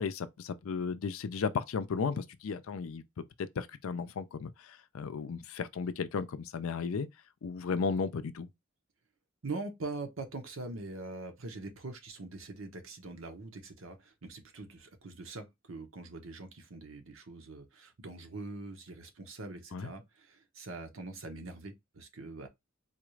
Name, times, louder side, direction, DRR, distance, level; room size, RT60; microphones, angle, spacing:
voice 1, 0.0-7.1 7.4-8.5 19.7-19.9, left 5 dB, 85° left, 0.4 m, -35 dB
voice 2, 9.4-22.5, right 3 dB, 75° right, 0.9 m, -43 dB
4.1 x 2.4 x 3.1 m
head